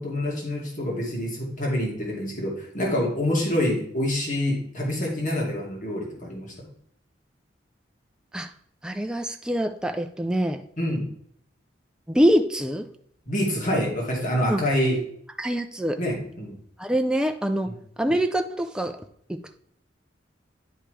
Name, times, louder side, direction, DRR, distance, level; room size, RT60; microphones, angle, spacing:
voice 1, 0.0-6.5 10.8-11.1 13.3-15.0 16.0-16.6 17.7-17.8, left 1 dB, 45° left, -2 dB, 2.2 m, -26 dB
voice 2, 8.8-10.6 12.1-12.9 14.4-14.6 15.4-16.0 16.8-17.7 18.0-19.0 19.3-19.6, equal, 5° right, 5 dB, 0.4 m, -24 dB
10.0 x 5.1 x 3.2 m, 0.68 s
head